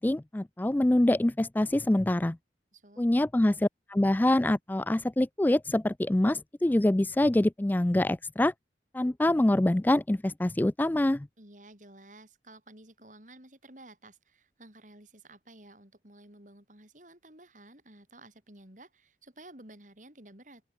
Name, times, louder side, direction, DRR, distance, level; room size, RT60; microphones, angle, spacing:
voice 1, 0.0-2.4 3.0-8.5 8.9-11.3, left 1 dB, 10° left, 0.3 m, -25 dB
voice 2, 2.7-3.1 11.4-20.6, right 1 dB, 45° right, 6.5 m, -53 dB
open air
head